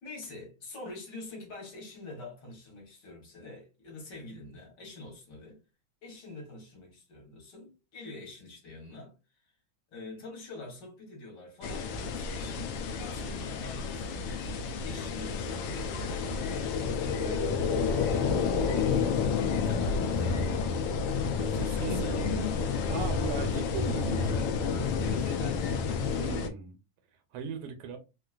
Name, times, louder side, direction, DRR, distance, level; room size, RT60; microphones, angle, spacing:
voice 1, 0.0-5.6 6.0-9.5 9.9-16.4 19.4-20.6 21.7-22.2 25.0-25.8, left 2 dB, 55° left, 1.7 m, -46 dB
sound 1, 11.6-26.5, left 5 dB, 75° left, 1.1 m, -30 dB
voice 2, 17.2-17.8 21.0-24.4 26.1-26.8 27.1-28.0, right 6 dB, 85° right, 1.6 m, -39 dB
3.8 x 2.3 x 2.3 m
omnidirectional pair, 2.4 m